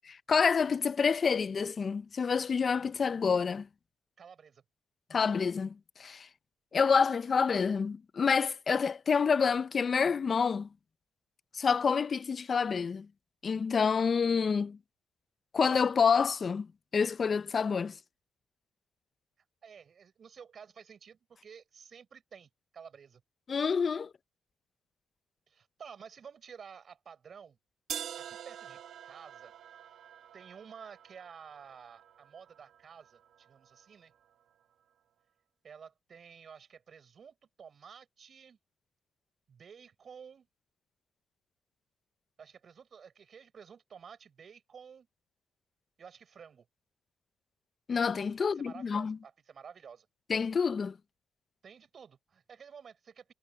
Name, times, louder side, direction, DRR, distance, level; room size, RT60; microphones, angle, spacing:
voice 1, 0.3-3.7 5.1-6.3 6.7-10.7 11.5-13.1 13.4-14.8 15.5-16.7 16.9-18.0 23.5-24.1 47.9-49.2 50.3-51.0, left 5 dB, 40° left, 0.7 m, -28 dB
voice 2, 4.2-4.6 19.6-23.2 25.5-27.6 28.2-29.5 30.3-34.1 35.6-38.6 39.5-40.5 42.4-45.1 46.0-46.7 48.5-50.1 51.6-53.3, right 7 dB, 50° right, 7.5 m, -52 dB
sound 1, 27.9-33.8, right 9 dB, 70° right, 1.3 m, -46 dB
cardioid pair, 90°, 0 cm